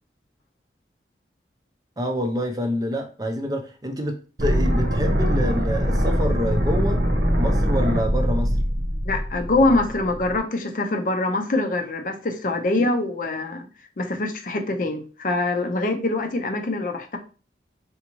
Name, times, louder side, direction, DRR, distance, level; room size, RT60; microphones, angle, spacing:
voice 1, 2.0-7.0 7.4-8.6, equal, 20° right, 4 dB, 0.5 m, -27 dB
sound 1, 4.4-10.4, equal, 70° right, 1.0 m, -22 dB
voice 2, 9.0-13.7 14.0-17.2, left 2 dB, 50° left, 6 dB, 0.6 m, -24 dB
4.0 x 3.5 x 3.0 m, 0.36 s
head